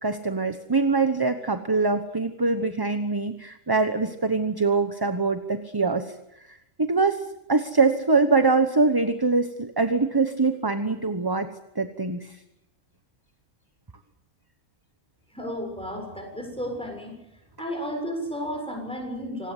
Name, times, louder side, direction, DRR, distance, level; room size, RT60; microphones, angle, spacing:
voice 1, 0.0-6.1 6.5-7.2 7.5-11.5 11.7-12.4, right 3 dB, 20° right, 9 dB, 0.9 m, -23 dB
voice 2, 15.3-17.1 17.6-19.5, equal, 5° left, 3 dB, 7.1 m, -33 dB
26.5 x 19.0 x 8.2 m, 0.87 s
omnidirectional pair, 1.5 m